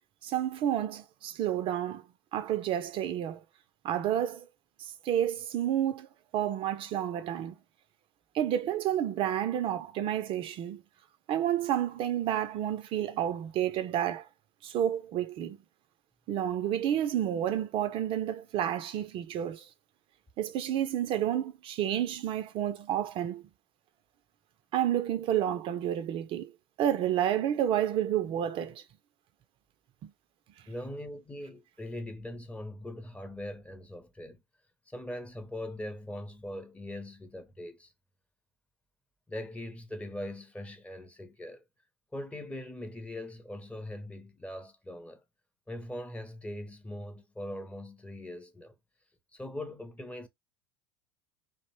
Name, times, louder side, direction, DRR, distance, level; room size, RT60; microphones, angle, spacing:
voice 1, 0.2-2.0 2.3-3.4 3.8-4.4 4.8-6.1 6.3-7.6 8.3-10.8 11.3-14.3 14.6-15.6 16.3-19.7 20.4-23.4 24.7-26.5 26.8-28.8, right 11 dB, 45° right, 0.4 m, -30 dB
voice 2, 30.7-34.4 34.9-37.9 39.3-41.6 42.1-45.2 45.7-48.8 49.3-50.3, left 1 dB, 10° left, 0.5 m, -41 dB
2.4 x 2.0 x 2.9 m
hypercardioid pair, 80°, 13 cm